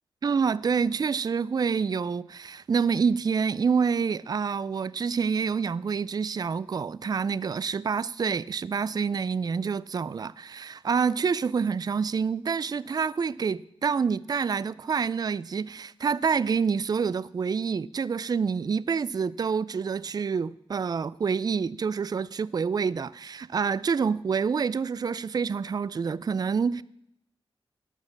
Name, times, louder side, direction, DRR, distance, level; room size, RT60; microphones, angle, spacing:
voice 1, 0.2-26.8, right 6 dB, 40° right, 0.3 m, -27 dB
11.5 x 6.4 x 7.2 m
cardioid pair, 70°, 10 cm